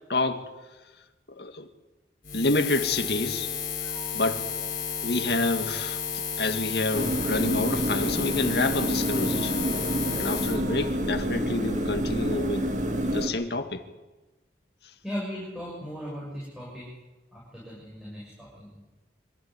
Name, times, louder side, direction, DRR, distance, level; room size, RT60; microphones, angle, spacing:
voice 1, 0.1-0.4 1.4-1.7 2.3-3.5 4.1-4.4 5.0-9.8 10.2-12.7 12.9-13.8, left 2 dB, 70° left, 2.1 m, -28 dB
Buzz, 2.2-10.6, left 8 dB, 50° left, 4.3 m, -32 dB
sound 1, 3.8-11.0, left 2 dB, 70° right, 5.5 m, -44 dB
sound 2, 6.9-13.3, equal, 45° right, 1.9 m, -28 dB
voice 2, 15.0-16.9 17.3-18.8, equal, 5° right, 7.2 m, -37 dB
25.0 x 15.0 x 9.7 m
head